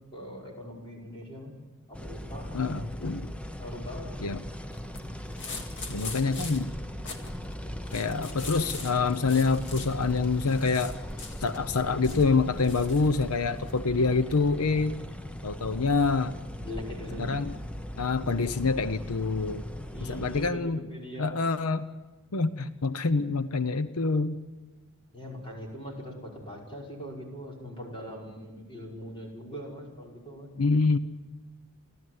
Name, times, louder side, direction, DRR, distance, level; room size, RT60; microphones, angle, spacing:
voice 1, 0.1-1.5 1.9-2.7 3.6-4.3 16.6-17.4 19.9-21.3 25.1-30.5, equal, 25° left, -1 dB, 5.3 m, -41 dB
sound 1, 1.9-20.5, equal, 5° left, 0.8 m, -39 dB
voice 2, 2.5-3.3 4.2-4.4 5.9-6.7 7.9-11.0 11.4-14.9 15.4-16.3 17.2-17.5 18.0-19.6 20.1-20.9 21.2-21.9 22.3-24.4 30.6-31.0, left 4 dB, 85° left, 13 dB, 0.8 m, -26 dB
sound 2, 4.7-13.8, left 4 dB, 55° left, 2.2 m, -43 dB
30.0 x 12.5 x 9.5 m, 1.3 s
head